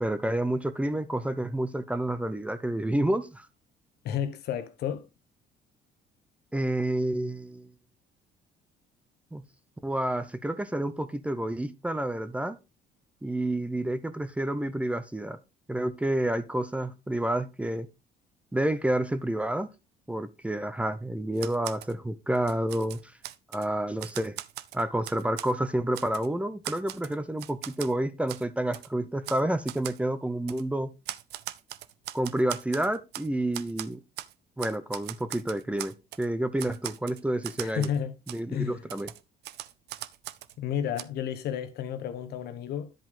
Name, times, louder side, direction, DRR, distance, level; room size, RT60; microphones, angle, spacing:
voice 1, 0.0-3.5 6.5-7.7 9.3-9.4 9.8-12.6 13.2-15.4 15.7-17.9 18.5-19.7 20.1-23.1 23.5-24.4 24.7-30.9 32.1-34.0 34.6-37.9 38.3-39.1, right 1 dB, 5° right, 0.7 m, -29 dB
voice 2, 4.0-5.1 37.6-38.1 38.5-38.8 40.6-42.9, left 9 dB, 75° left, 1.1 m, -31 dB
Typewriter, 21.4-21.9 22.4-23.7 24.0-25.5 25.9-26.3 26.6-27.9 28.3-28.4 28.7-28.9 29.2-29.4 29.7-30.0 30.5-30.6 31.1-33.3 33.5-34.3 34.6-36.3 36.6-38.0 38.3-38.4 38.9-40.6 41.0-41.1, right 14 dB, 75° right, 0.6 m, -40 dB
10.5 x 5.3 x 3.6 m
cardioid pair, 110°, 17 cm